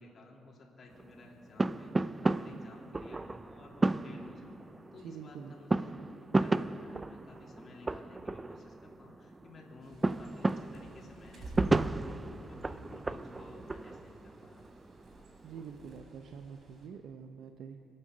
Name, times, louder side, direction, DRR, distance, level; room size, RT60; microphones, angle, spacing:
voice 1, 0.0-4.6 4.9-5.9 6.2-14.7, left 2 dB, 50° left, -2 dB, 3.0 m, -54 dB
sound 1, 0.9-15.9, right 2 dB, 20° right, 0.4 m, -34 dB
voice 2, 4.9-5.5 15.4-17.8, right 7 dB, 75° right, 7 dB, 0.7 m, -46 dB
Bird, 9.8-16.9, right 2 dB, 50° right, 3.6 m, -47 dB
25.0 x 8.7 x 6.4 m, 2.9 s
cardioid pair, 90°, 0 cm